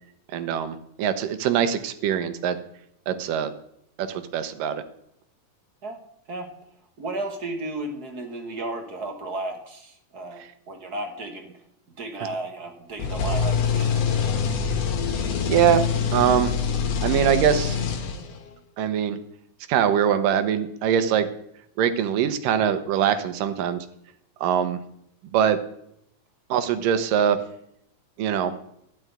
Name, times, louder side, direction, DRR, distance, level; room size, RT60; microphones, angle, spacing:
voice 1, 0.3-2.6 3.1-3.5 4.0-4.8 15.5-15.8 16.1-16.5 17.0-17.8 18.8-19.2 19.7-21.3 21.8-23.8 24.4-24.8 25.3-25.6 26.5-27.4 28.2-28.5, right 9 dB, 90° right, 10 dB, 2.7 m, -22 dB
voice 2, 7.0-11.6 12.0-14.7, right 2 dB, 55° right, 4 dB, 1.1 m, -34 dB
sound 1, 13.0-18.5, left 6 dB, 60° left, 2.2 m, -25 dB
12.5 x 6.2 x 9.3 m, 0.75 s
omnidirectional pair, 3.7 m